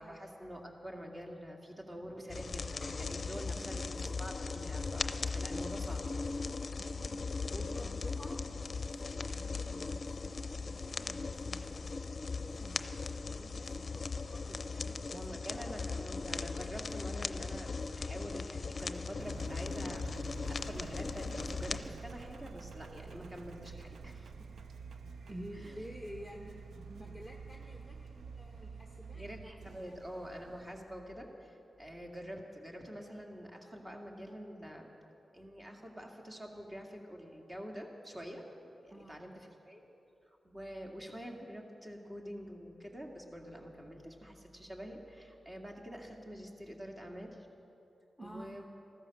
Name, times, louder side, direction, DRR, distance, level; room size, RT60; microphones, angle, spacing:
voice 1, 0.0-6.0 15.1-24.3 25.5-25.8 29.1-34.9 35.3-38.5 38.8-39.9 40.4-47.4 48.2-48.7, equal, 25° right, 1 dB, 2.3 m, -46 dB
sound 1, 2.3-21.8, left 4 dB, 50° left, 0.6 m, -38 dB
voice 2, 3.5-4.1 6.8-7.2 7.5-15.9 24.8-24.9 25.3-29.5 29.9-30.0 38.9-39.2 48.2-48.6, equal, 5° right, 0 dB, 1.3 m, -51 dB
Engine, 19.2-30.8, right 5 dB, 90° right, 0.6 m, -49 dB
15.0 x 13.5 x 6.5 m, 2.9 s
cardioid pair, 65°, 0 cm